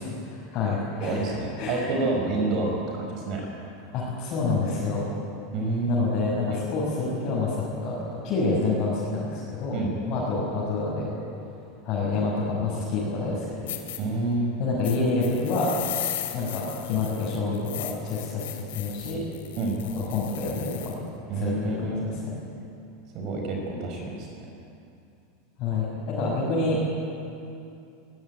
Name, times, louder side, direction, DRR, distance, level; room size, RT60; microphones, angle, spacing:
voice 1, 0.3-1.2 1.6-1.8 3.9-5.1 5.9-9.8 10.1-11.1 11.8-13.7 14.6-15.7 16.3-19.3 19.9-21.0 21.3-21.7 25.6-26.8, left 3 dB, 35° left, -6 dB, 6.3 m, -27 dB
voice 2, 1.0-3.4 5.5-6.1 6.5-6.6 9.7-9.9 14.0-14.5 19.6-19.8 21.3-22.1 23.1-24.4, right 2 dB, 40° right, 1 dB, 5.2 m, -28 dB
sound 1, 13.2-13.3 13.7-14.0 14.8-21.0, left 13 dB, 80° left, 3.1 m, -36 dB
23.0 x 19.0 x 9.2 m, 2.6 s
supercardioid pair, 165°, 0 cm